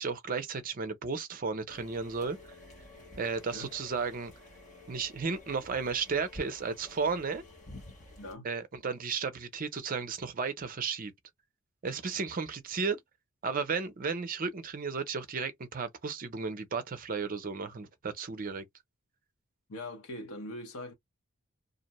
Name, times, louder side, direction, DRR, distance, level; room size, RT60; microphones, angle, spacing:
voice 1, 0.0-2.4 3.2-4.3 4.9-7.4 8.4-11.1 11.8-13.0 13.4-18.6, right 5 dB, 40° right, 0.5 m, -34 dB
sound 1, 1.7-8.4, left 1 dB, 35° left, 1.2 m, -51 dB
voice 2, 8.2-8.5 19.7-20.9, left 1 dB, 80° left, 0.9 m, -41 dB
2.5 x 2.1 x 2.9 m
head